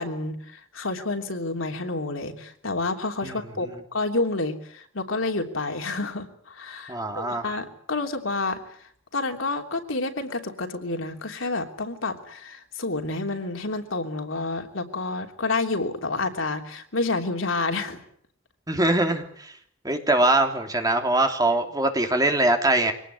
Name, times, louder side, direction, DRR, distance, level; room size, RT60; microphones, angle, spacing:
voice 1, 0.0-8.6 9.1-18.0, left 3 dB, 85° left, 4 dB, 3.2 m, -29 dB
voice 2, 3.2-3.7 6.9-7.4 18.7-19.5 19.8-22.9, right 2 dB, 20° right, 4 dB, 3.1 m, -23 dB
24.5 x 19.0 x 9.7 m, 0.64 s
head